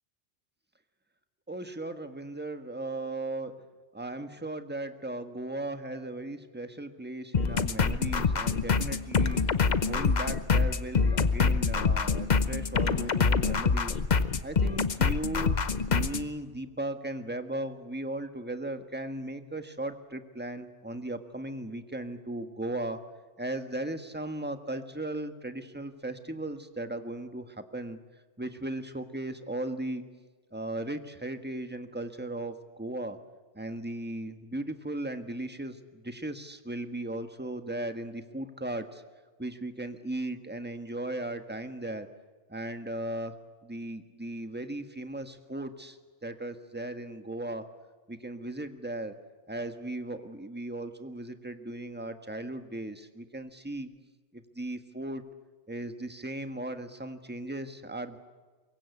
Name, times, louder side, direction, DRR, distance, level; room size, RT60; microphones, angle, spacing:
voice 1, 1.5-3.6 3.9-9.4 9.8-14.0 14.4-15.5 15.9-23.0 23.4-28.0 28.4-30.0 30.5-33.2 33.5-39.0 39.4-42.1 42.5-43.3 43.6-47.7 48.1-49.1 49.5-53.9 54.3-55.2 55.7-58.2, right 1 dB, 10° right, 8 dB, 1.4 m, -37 dB
sound 1, 7.3-16.3, left 5 dB, 40° left, 1.0 m, -25 dB
24.5 x 22.5 x 8.3 m, 1.4 s
omnidirectional pair, 1.2 m